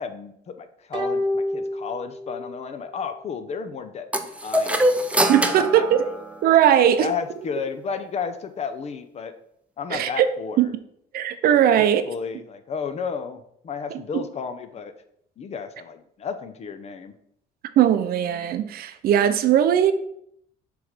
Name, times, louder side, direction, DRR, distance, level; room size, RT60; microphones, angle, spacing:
voice 1, 0.0-5.0 5.3-6.2 6.8-9.3 9.8-10.7 11.7-14.9 15.4-17.1, left 6 dB, 40° left, 9 dB, 0.6 m, -33 dB
sound 1, 0.9-2.6 2.9-3.0, left 1 dB, 25° right, 1.3 m, -28 dB
sound 2, 4.1-6.8, right 1 dB, 5° right, 0.6 m, -24 dB
voice 2, 5.3-6.0 6.4-7.1 9.9-10.3 10.6-10.7 11.1-12.0 17.8-19.9, right 10 dB, 65° right, 11 dB, 0.6 m, -19 dB
6.9 x 3.2 x 5.0 m, 0.72 s
cardioid pair, 110°, 17 cm